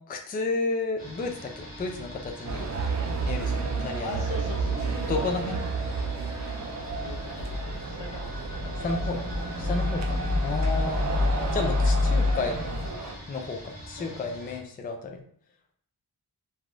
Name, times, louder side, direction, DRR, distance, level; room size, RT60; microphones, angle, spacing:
voice 1, 0.1-2.7 3.2-4.2 5.1-5.6 8.8-9.2 9.6-10.2 10.4-11.0 11.5-12.6 13.3-15.2, left 3 dB, 25° left, 3 dB, 0.3 m, -32 dB
sound 1, 1.0-14.6, equal, 60° left, 1.2 m, -44 dB
sound 2, 2.4-13.1, right 4 dB, 40° right, 0.4 m, -32 dB
voice 2, 4.0-5.1 7.0-7.6 7.8-8.3 8.6-9.4 10.0-10.3 13.9-14.3, left 3 dB, 80° left, 2 dB, 0.7 m, -42 dB
sound 3, 6.6-12.9, left 2 dB, 75° right, 0.9 m, -28 dB
3.3 x 2.3 x 2.5 m, 0.64 s
wide cardioid pair, 115°, 43 cm